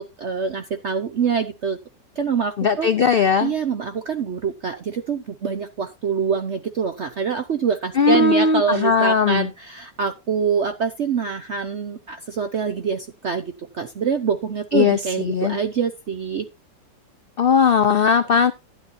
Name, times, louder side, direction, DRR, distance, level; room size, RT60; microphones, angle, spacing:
voice 1, 0.0-1.8 2.2-16.5, right 6 dB, 55° right, 8 dB, 0.9 m, -25 dB
voice 2, 2.6-3.5 8.0-9.5 14.7-15.6 17.4-18.5, left 5 dB, 85° left, 10 dB, 0.5 m, -18 dB
12.5 x 10.0 x 2.7 m, 0.23 s
omnidirectional pair, 1.9 m